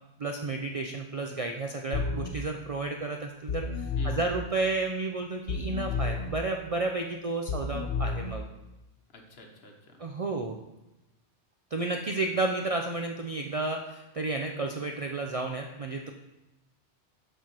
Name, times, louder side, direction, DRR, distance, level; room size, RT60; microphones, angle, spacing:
voice 1, 0.2-8.4 10.0-10.6 11.7-16.1, right 3 dB, 50° right, 3 dB, 0.4 m, -32 dB
sound 1, 1.9-2.3 3.5-4.3 5.5-6.3 7.5-8.3, left 4 dB, 85° left, 1.2 m, -31 dB
voice 2, 4.0-4.3 9.1-10.0 12.1-12.3, left 3 dB, 65° left, 2 dB, 1.4 m, -48 dB
7.1 x 4.5 x 6.0 m, 0.98 s
omnidirectional pair, 1.1 m